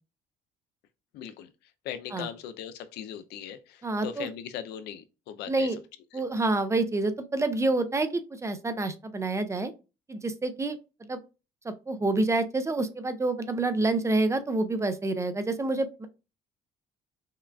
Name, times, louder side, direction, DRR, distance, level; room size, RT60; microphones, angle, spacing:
voice 1, 1.1-1.5 1.8-5.7, left 9 dB, 80° left, 0.5 m, -39 dB
voice 2, 3.8-4.3 5.5-5.8 6.1-9.7 10.1-11.2 11.6-16.1, right 2 dB, 15° right, 0.5 m, -28 dB
5.6 x 2.4 x 2.3 m
cardioid pair, 110°, 17 cm